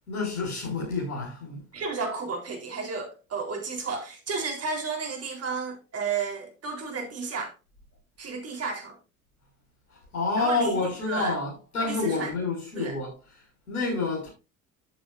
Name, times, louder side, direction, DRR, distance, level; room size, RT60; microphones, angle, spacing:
voice 1, 0.1-1.6 9.9-14.3, left 3 dB, 80° left, 5.8 m, -29 dB
voice 2, 1.7-7.5 8.2-9.0 10.4-10.8 11.0-11.4 11.8-12.3 12.8-12.9, right 4 dB, 35° right, 3.7 m, -32 dB
12.5 x 7.6 x 2.5 m
figure-of-eight pair, 70°, 43 cm